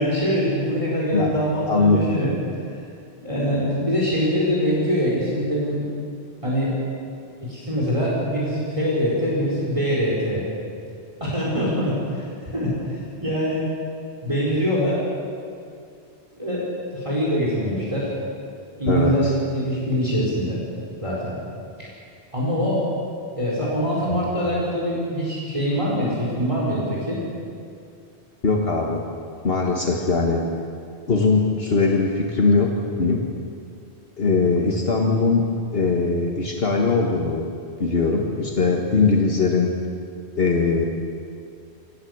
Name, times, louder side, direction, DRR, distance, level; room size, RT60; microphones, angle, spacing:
voice 1, 0.0-2.3 2.7-2.9 3.2-5.8 6.4-6.8 7.4-10.4 11.2-13.7 14.2-15.0 16.4-18.1 18.8-20.6 21.0-21.4 21.8-21.9 22.3-22.8 23.4-27.2, equal, 30° right, -5 dB, 4.7 m, -23 dB
voice 2, 1.7-2.0 18.9-19.3 24.1-24.2 28.4-29.0 29.4-30.4 31.1-33.3 34.2-35.5 35.7-37.5 37.8-39.7 40.4-40.9, left 4 dB, 65° left, 0 dB, 1.9 m, -20 dB
25.0 x 18.5 x 8.1 m, 2.5 s
omnidirectional pair, 1.1 m